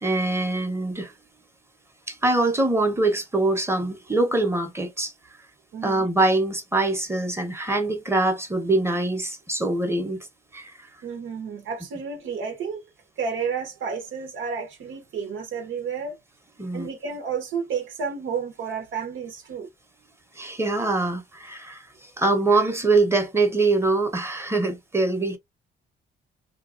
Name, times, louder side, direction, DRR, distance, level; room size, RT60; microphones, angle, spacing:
voice 1, 0.0-1.1 2.1-5.1 5.8-10.3 10.5-10.7 16.6-16.9 20.3-25.4, right 2 dB, 15° right, 0.9 m, -23 dB
voice 2, 5.7-6.1 11.0-12.9 13.2-16.2 16.7-19.7, right 6 dB, 80° right, 1.0 m, -31 dB
2.9 x 2.3 x 2.5 m
cardioid pair, 90°, 20 cm